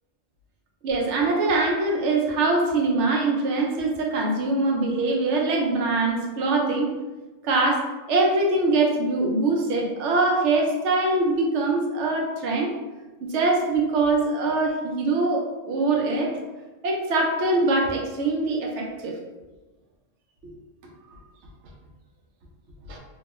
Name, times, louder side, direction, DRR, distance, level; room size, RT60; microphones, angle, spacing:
voice 1, 0.8-6.9 7.4-12.7 13.2-16.3 16.8-19.1 20.4-20.5 22.9-23.0, right 2 dB, 70° right, 0 dB, 0.9 m, -23 dB
3.0 x 2.2 x 2.9 m, 1.2 s
omnidirectional pair, 1.3 m